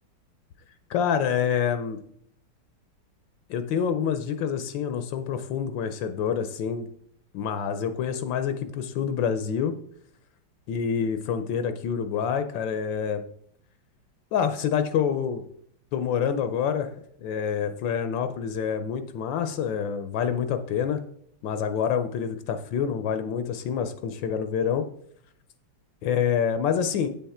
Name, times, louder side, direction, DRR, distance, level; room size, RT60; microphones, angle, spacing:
voice 1, 0.9-2.0 3.5-6.9 7.3-9.7 10.7-13.2 14.3-15.4 15.9-16.9 17.2-21.0 21.4-24.9 26.0-27.1, left 7 dB, 75° left, 9 dB, 1.3 m, -27 dB
8.5 x 5.7 x 4.2 m, 0.66 s
omnidirectional pair, 2.2 m